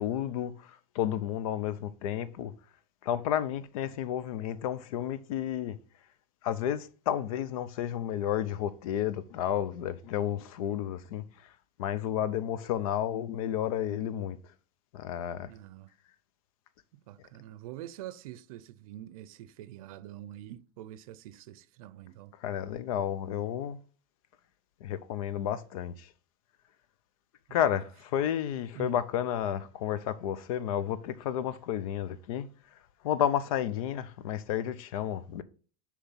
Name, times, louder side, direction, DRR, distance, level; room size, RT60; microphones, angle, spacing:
voice 1, 0.0-2.5 3.0-5.8 6.4-11.5 11.8-14.4 14.9-15.5 22.4-23.8 24.8-26.1 27.5-32.8 33.0-35.4, left 10 dB, 80° left, 0.7 m, -31 dB
voice 2, 15.4-15.9 16.9-22.3 27.5-27.8 28.7-29.0, right 13 dB, 80° right, 0.5 m, -45 dB
6.7 x 3.2 x 5.6 m
supercardioid pair, 155°, 18 cm